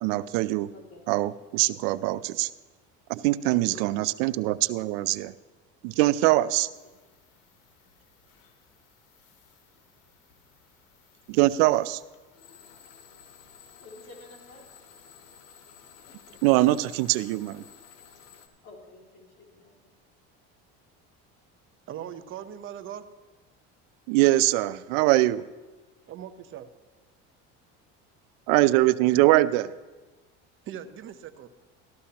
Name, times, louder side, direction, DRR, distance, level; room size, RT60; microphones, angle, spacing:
voice 1, 0.0-0.7 1.1-2.5 3.1-5.3 5.8-6.7 11.3-12.0 16.4-17.6 24.1-25.4 28.5-29.7, right 17 dB, 90° right, 16 dB, 0.5 m, -23 dB
voice 2, 0.7-1.0 3.5-4.3 13.8-14.7 18.6-19.9, left 3 dB, 60° left, -2 dB, 3.1 m, -49 dB
sound 1, 6.7-18.5, left 7 dB, 90° left, 1.1 m, -55 dB
voice 3, 21.9-23.1 24.9-25.0 26.1-26.7 30.6-31.5, right 10 dB, 45° right, 10 dB, 0.8 m, -40 dB
14.0 x 13.0 x 2.9 m, 1.2 s
cardioid pair, 125°, 29 cm